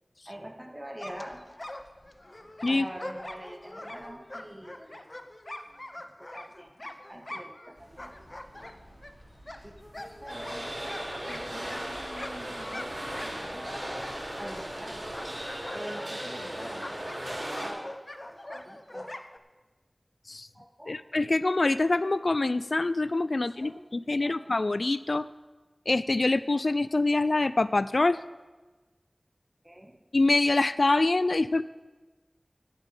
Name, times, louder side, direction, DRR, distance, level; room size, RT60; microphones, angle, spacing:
voice 1, 0.3-1.4 2.7-5.0 6.2-8.2 8.5-8.7 9.6-13.8 14.4-15.2 15.7-17.9 18.2-19.1 20.5-21.0 23.5-24.5 29.6-30.0, right 1 dB, 20° right, 3 dB, 1.8 m, -45 dB
sound 1, 1.0-7.7 8.0-14.8 15.1-19.4, left 1 dB, 40° left, 0.8 m, -43 dB
sound 2, 7.7-15.4, equal, 35° right, 3.3 m, -53 dB
sound 3, 10.3-17.7, right 1 dB, 75° right, 5.0 m, -37 dB
voice 2, 20.9-25.3 25.9-28.2 30.1-31.6, left 2 dB, 75° left, 16 dB, 0.3 m, -25 dB
11.0 x 7.4 x 8.3 m, 1.2 s
wide cardioid pair, 40°, 0 cm